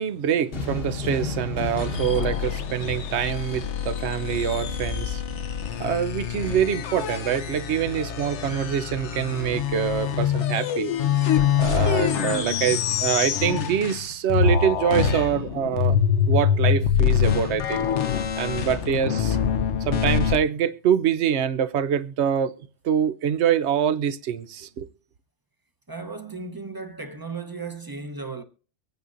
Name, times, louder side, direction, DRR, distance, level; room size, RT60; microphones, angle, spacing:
voice 1, 0.0-5.2 5.8-11.0 11.5-16.0 16.3-19.4 19.8-22.5 22.8-24.9, right 9 dB, 70° right, 1.0 m, -25 dB
sound 1, 0.5-4.0, left 3 dB, 55° left, 1.4 m, -32 dB
sound 2, 1.8-14.0 14.3-20.4, left 8 dB, 80° left, 1.0 m, -25 dB
voice 2, 25.9-28.4, right 4 dB, 20° right, 0.8 m, -35 dB
24.0 x 9.2 x 2.5 m
omnidirectional pair, 1.2 m